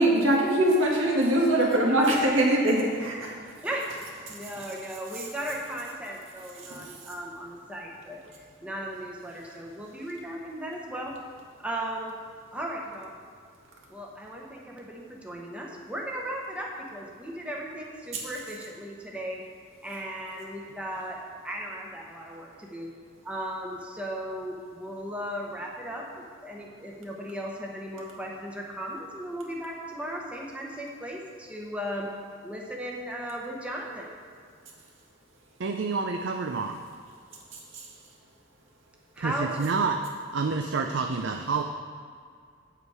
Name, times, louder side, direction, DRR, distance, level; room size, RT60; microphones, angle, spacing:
voice 1, 0.0-3.4 6.7-6.8, right 1 dB, 75° right, -2 dB, 1.8 m, -22 dB
voice 2, 3.6-3.9 4.3-8.2 8.6-11.2 11.6-12.2 12.5-13.1 13.9-19.4 19.8-21.2 21.4-22.9 23.2-32.1 32.4-34.1 39.1-39.7, right 1 dB, 5° right, -2 dB, 1.0 m, -36 dB
voice 3, 35.6-36.8 39.2-40.0 40.3-41.6, right 4 dB, 60° right, 5 dB, 0.5 m, -28 dB
8.2 x 7.8 x 4.8 m, 2.2 s
head